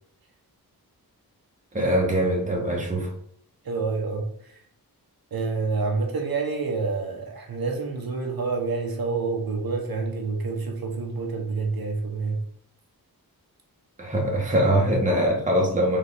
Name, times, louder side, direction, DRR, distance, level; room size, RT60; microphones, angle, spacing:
voice 1, 1.7-3.1 14.0-16.0, right 1 dB, 20° right, 1.0 m, -22 dB
voice 2, 3.6-4.6 5.3-12.4, right 4 dB, 70° right, 0.9 m, -28 dB
4.2 x 3.5 x 3.4 m
wide cardioid pair, 130°, 38 cm